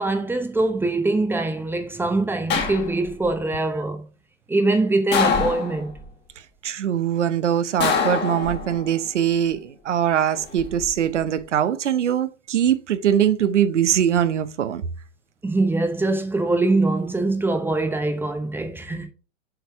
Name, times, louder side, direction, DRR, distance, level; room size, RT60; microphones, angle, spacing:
voice 1, 0.0-4.0 4.5-5.9 15.4-19.1, right 2 dB, 5° right, 0.8 m, -23 dB
sound 1, 2.5-3.3 5.1-6.1 7.8-8.9 10.3-10.9, left 5 dB, 30° left, 1.7 m, -24 dB
voice 2, 6.6-14.8, right 9 dB, 75° right, 0.9 m, -22 dB
6.8 x 4.3 x 4.5 m
hypercardioid pair, 110°, 36 cm